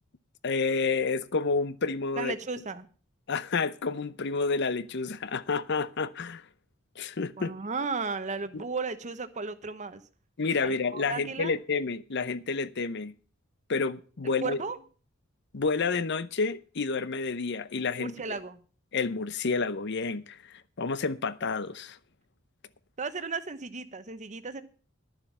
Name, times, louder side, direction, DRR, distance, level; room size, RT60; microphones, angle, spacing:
voice 1, 0.4-2.3 3.3-6.4 7.0-7.5 8.5-8.6 10.4-13.1 13.7-14.6 15.5-18.1 18.9-22.0, left 4 dB, 55° left, 0.7 m, -29 dB
voice 2, 2.2-2.9 7.4-10.0 10.6-11.6 14.2-14.8 18.0-18.6 23.0-24.6, right 4 dB, 35° right, 1.0 m, -35 dB
12.0 x 7.2 x 7.3 m
head